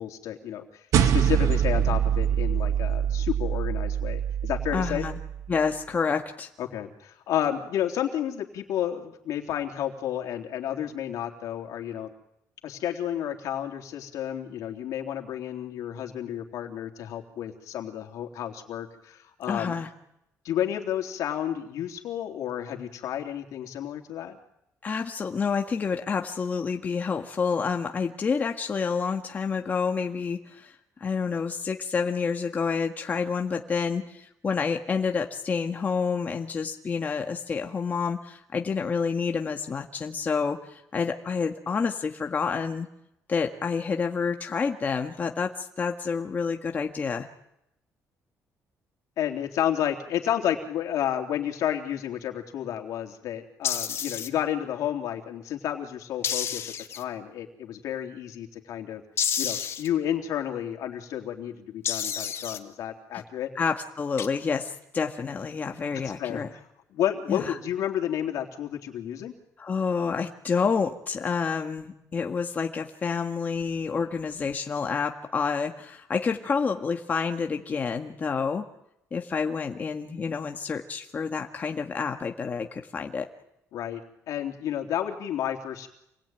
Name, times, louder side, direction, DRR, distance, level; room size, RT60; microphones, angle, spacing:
voice 1, 0.0-5.0 6.6-12.1 12.6-19.7 20.4-24.4 49.2-59.0 59.4-63.5 65.9-66.6 66.9-69.3 83.7-84.0 84.3-85.9, left 10 dB, 80° left, 3 dB, 3.4 m, -31 dB
sound 1, 0.9-5.6, right 9 dB, 75° right, 1.9 m, -25 dB
voice 2, 4.7-5.2 5.5-6.5 19.5-19.9 24.8-30.7 31.0-42.9 43.3-47.3 63.5-66.5 67.3-67.5 69.6-78.7 79.1-83.3, left 5 dB, 30° left, 3 dB, 1.7 m, -28 dB
sound 2, 53.6-54.3 56.2-57.0 59.2-59.9 61.8-62.6 64.2-64.3, left 8 dB, 50° left, 1.8 m, -29 dB
28.0 x 21.0 x 9.2 m, 0.80 s
cardioid pair, 160°, 6 cm